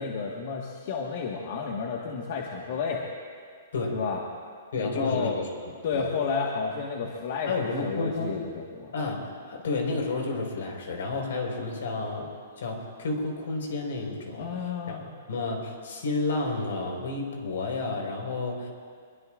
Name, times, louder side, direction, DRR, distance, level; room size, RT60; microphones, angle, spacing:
voice 1, 0.0-3.0 3.9-4.2 4.8-5.4 5.8-8.9 14.4-15.1, left 5 dB, 50° left, -1 dB, 1.6 m, -31 dB
voice 2, 4.7-6.1 7.5-8.4 8.9-14.6 14.9-15.0 15.3-18.7, left 3 dB, 75° left, 1 dB, 4.7 m, -31 dB
25.0 x 22.0 x 2.6 m, 2.1 s
hypercardioid pair, 165°, 0 cm